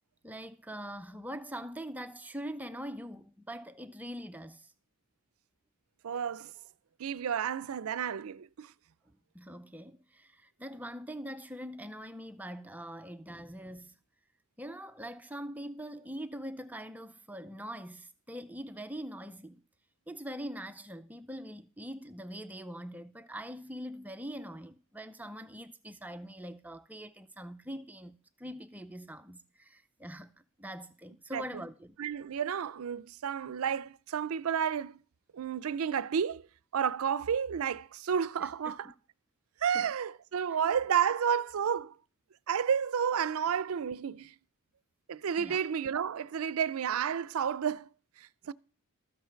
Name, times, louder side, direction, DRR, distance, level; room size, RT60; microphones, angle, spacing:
voice 1, 0.2-4.7 9.1-14.0 14.6-19.6 20.1-30.3 30.6-31.9 38.4-38.9 39.7-39.9 40.5-40.6 45.4-45.6, equal, 5° right, 0.5 m, -43 dB
voice 2, 6.0-6.5 7.0-8.7 31.3-31.4 32.0-35.0 35.3-36.4 36.7-38.8 39.6-41.9 42.5-44.3 45.1-47.9 48.5-48.6, right 7 dB, 80° right, 0.4 m, -31 dB
13.0 x 8.1 x 4.5 m
head